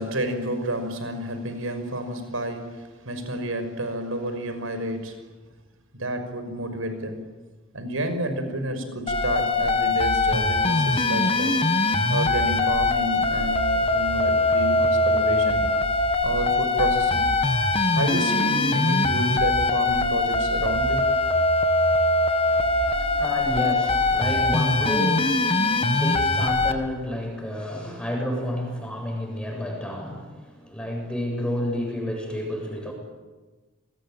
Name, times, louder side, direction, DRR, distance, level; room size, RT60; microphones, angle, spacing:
voice 1, 0.0-5.2 5.9-7.2 7.7-11.5 12.1-15.6 16.2-17.3 18.0-21.0, right 1 dB, 85° right, 8 dB, 5.9 m, -30 dB
sound 1, 9.1-26.7, left 2 dB, 30° left, 1.9 m, -22 dB
voice 2, 22.5-32.9, equal, 5° left, 2 dB, 7.8 m, -30 dB
29.5 x 21.0 x 9.1 m, 1.2 s
head